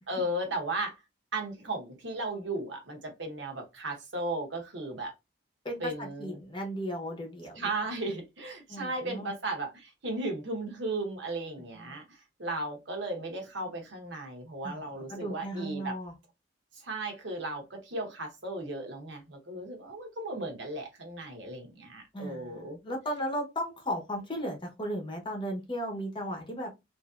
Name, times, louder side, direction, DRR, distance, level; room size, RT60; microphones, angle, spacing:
voice 1, 0.1-1.0 1.3-5.1 5.8-6.4 7.6-15.9 16.7-22.8, right 2 dB, 70° right, 1.0 m, -36 dB
voice 2, 5.6-7.7 8.7-9.3 11.8-12.0 14.6-16.1 22.1-26.8, equal, 25° left, 0.8 m, -36 dB
3.1 x 2.6 x 2.4 m
head